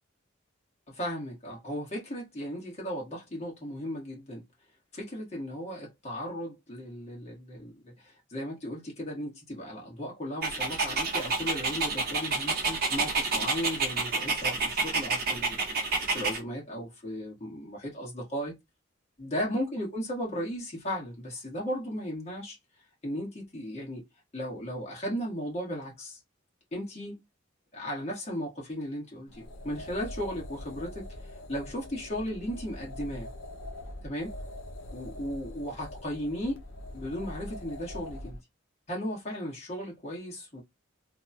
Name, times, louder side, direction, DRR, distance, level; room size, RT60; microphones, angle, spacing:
voice 1, 0.9-4.4 4.9-18.5 19.2-22.6 23.0-24.0 24.3-26.2 26.7-27.2 27.7-31.1 31.5-33.3 34.0-34.3 34.9-36.6 36.9-38.4 38.9-40.6, equal, 35° left, 1.6 m, -36 dB
Dog, 10.4-16.4, right 4 dB, 50° right, 0.9 m, -29 dB
sound 1, 29.3-38.4, left 1 dB, 75° left, 0.7 m, -43 dB
3.4 x 2.3 x 2.7 m
head